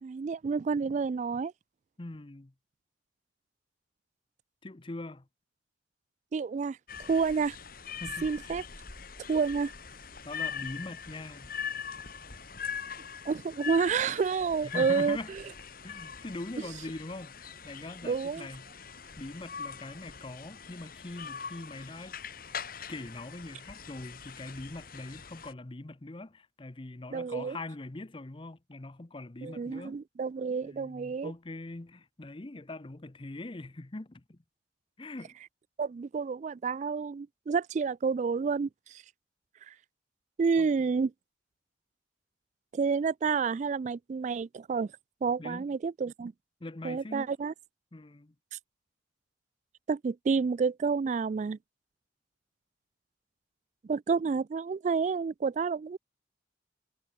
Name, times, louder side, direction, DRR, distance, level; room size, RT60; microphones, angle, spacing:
voice 1, 0.0-1.5 6.3-6.8 7.1-7.6 8.2-8.6 9.3-9.7 13.3-15.2 18.0-18.5 27.1-27.6 29.4-31.3 35.8-39.0 39.7-39.8 40.4-41.1 42.7-44.9 45.2-46.3 46.8-47.5 48.5-48.6 49.9-51.6 53.9-56.0, right 5 dB, 40° right, 0.3 m, -29 dB
voice 2, 2.0-2.5 4.6-5.3 8.0-8.7 10.2-11.5 14.6-15.3 15.8-18.9 19.2-22.2 22.9-30.0 30.6-34.4 35.0-35.4 40.6-40.7 45.4-45.7 46.6-47.3 47.9-48.3, left 2 dB, 30° left, 0.7 m, -42 dB
sound 1, 6.9-25.5, left 7 dB, 55° left, 3.0 m, -42 dB
head